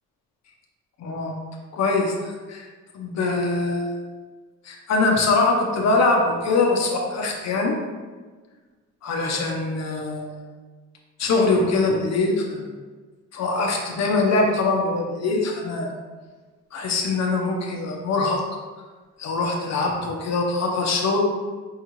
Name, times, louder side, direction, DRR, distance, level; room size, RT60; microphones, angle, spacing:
voice 1, 1.0-1.4 1.7-2.7 2.9-4.1 4.6-7.8 9.0-10.4 11.2-12.7 13.3-15.9 16.7-18.4 19.2-21.2, left 3 dB, 60° left, 1 dB, 0.7 m, -23 dB
5.5 x 2.3 x 3.0 m, 1.4 s
cardioid pair, 90°, 30 cm